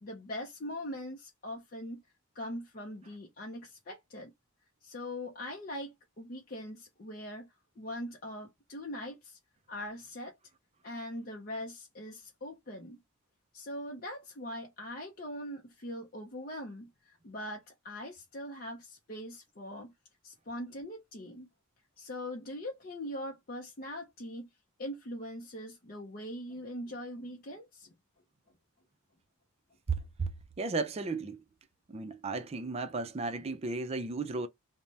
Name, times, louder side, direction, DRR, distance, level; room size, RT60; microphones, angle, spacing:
voice 1, 0.0-2.0 2.3-4.3 4.8-9.4 9.7-10.3 10.8-13.0 13.5-19.9 20.2-21.5 22.0-24.5 24.8-27.9, left 1 dB, 40° left, 0.6 m, -41 dB
voice 2, 29.9-30.3 30.6-31.4 31.9-34.5, right 3 dB, 30° right, 0.4 m, -34 dB
3.2 x 2.1 x 2.7 m
head